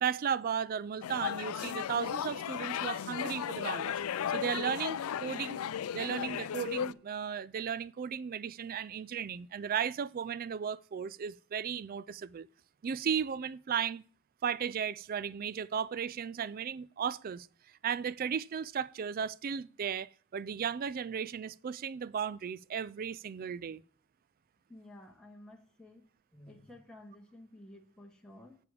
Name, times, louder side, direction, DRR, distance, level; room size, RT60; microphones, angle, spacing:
voice 1, 0.0-3.9 4.3-5.6 5.9-12.5 12.8-14.0 14.4-17.5 17.8-23.8, right 7 dB, 40° right, 0.3 m, -35 dB
sound 1, 1.0-6.9, left 9 dB, 85° left, 0.4 m, -35 dB
voice 2, 24.7-26.1 26.3-28.6, left 1 dB, 5° left, 1.2 m, -53 dB
8.2 x 6.8 x 4.8 m
head